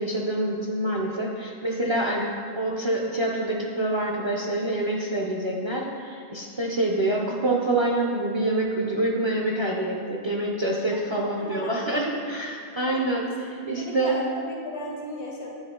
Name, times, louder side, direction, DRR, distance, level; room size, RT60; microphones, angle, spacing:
voice 1, 0.0-2.3 2.5-14.1, right 1 dB, 35° right, -2 dB, 0.5 m, -26 dB
voice 2, 11.1-11.7 12.9-13.0 13.2-13.3 13.6-15.5, left 1 dB, 80° left, -2 dB, 1.4 m, -36 dB
8.8 x 4.1 x 3.7 m, 2.3 s
omnidirectional pair, 1.1 m